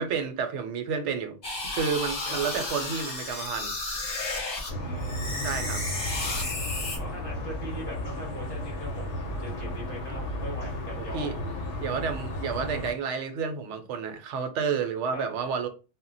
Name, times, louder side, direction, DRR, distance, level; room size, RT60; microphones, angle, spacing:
voice 1, 0.0-1.4 1.6-3.7 5.4-5.8 11.0-11.3 11.8-15.7, right 6 dB, 75° right, 0.9 m, -30 dB
sound 1, 1.4-4.7 5.0-7.0, left 2 dB, 40° left, 0.7 m, -33 dB
voice 2, 2.3-2.7 4.8-5.9 7.0-11.4 15.1-15.3, equal, 25° right, 0.6 m, -41 dB
sound 2, 4.7-12.9, left 1 dB, 75° left, 0.9 m, -34 dB
2.1 x 2.1 x 3.8 m
omnidirectional pair, 1.3 m